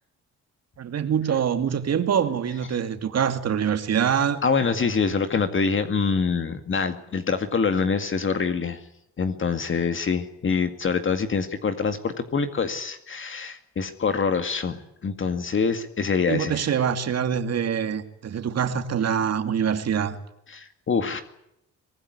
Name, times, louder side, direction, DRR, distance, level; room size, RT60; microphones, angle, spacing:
voice 1, 0.8-4.4 16.3-20.2, right 8 dB, 55° right, 2.6 m, -24 dB
voice 2, 4.4-8.8 9.2-16.7 20.5-21.2, left 5 dB, 40° left, 2.1 m, -25 dB
24.0 x 18.5 x 9.6 m
cardioid pair, 90°, 30 cm